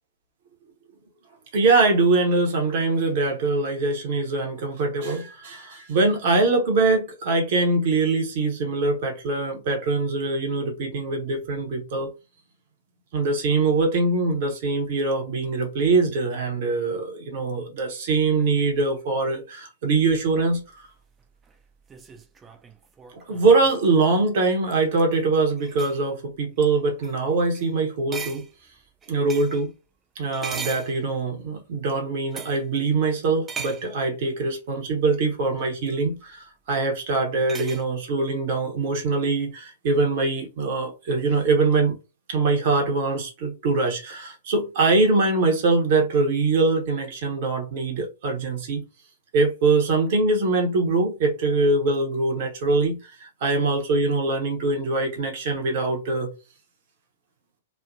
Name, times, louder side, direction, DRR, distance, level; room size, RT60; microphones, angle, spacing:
voice 1, 1.5-12.1 13.1-20.9 23.3-28.4 29.1-29.7 30.2-42.0 42.3-48.8 49.3-56.3, right 3 dB, 55° right, 0.9 m, -23 dB
sound 1, 20.1-23.9 24.9-25.2 25.6-26.0 26.6-26.7 27.0-27.2 27.5-27.7 28.1-29.7 30.3-31.5 32.3-32.7 33.5-33.9 35.6-35.7 37.5-37.8, right 5 dB, 20° right, 0.5 m, -38 dB
3.1 x 2.1 x 2.6 m
figure-of-eight pair, 105°, 0 cm